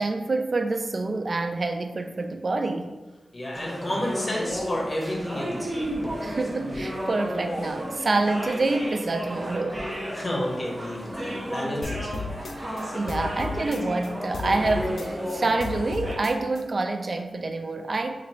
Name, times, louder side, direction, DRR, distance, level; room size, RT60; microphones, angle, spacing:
voice 1, 0.0-2.9 6.2-9.8 13.0-18.1, right 3 dB, 45° right, 6 dB, 0.3 m, -27 dB
voice 2, 3.3-5.9 10.1-12.3, left 1 dB, 30° left, -2 dB, 1.0 m, -31 dB
sound 1, 3.5-16.2, equal, 25° right, 0.8 m, -33 dB
sound 2, 11.8-14.1 14.3-16.6, left 4 dB, 85° left, 0.3 m, -35 dB
2.9 x 2.5 x 4.2 m, 1.1 s
wide cardioid pair, 100°, 0 cm